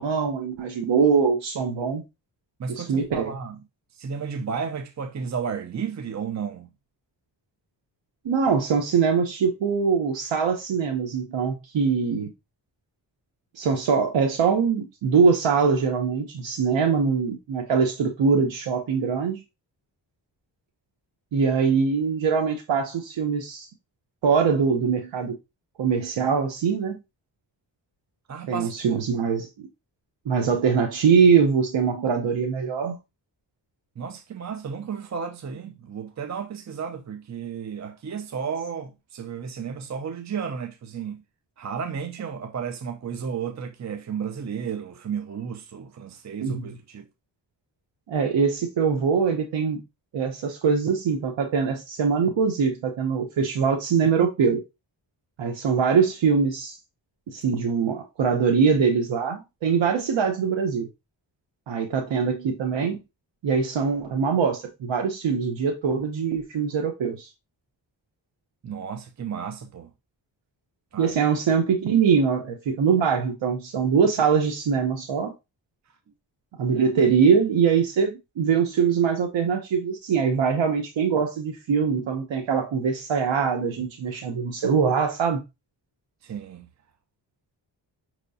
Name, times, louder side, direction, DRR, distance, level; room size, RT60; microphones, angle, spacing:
voice 1, 0.0-2.0 2.7-3.3 8.2-12.3 13.6-19.4 21.3-23.7 24.2-25.3 25.8-27.0 28.5-29.7 30.3-33.0 46.4-46.7 48.1-49.8 50.1-54.6 55.4-56.8 57.3-60.9 61.7-63.0 63.4-67.3 71.0-75.3 76.6-85.4, right 6 dB, 85° right, 0.9 m, -23 dB
voice 2, 2.6-3.6 3.9-6.7 28.3-28.7 34.0-41.2 41.6-47.1 68.6-69.9 70.9-71.2 86.2-86.7, right 6 dB, 40° right, 0.6 m, -33 dB
5.5 x 3.0 x 2.6 m
cardioid pair, 65°, 45 cm